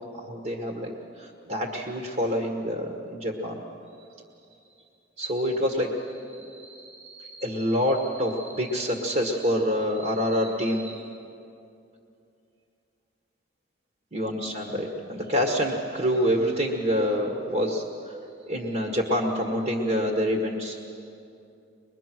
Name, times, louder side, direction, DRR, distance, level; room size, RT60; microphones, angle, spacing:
voice 1, 0.1-0.9 1.2-3.6 5.2-11.1 14.1-17.8 18.4-20.8, equal, 40° right, 1 dB, 1.7 m, -27 dB
23.0 x 22.0 x 6.2 m, 2.6 s
head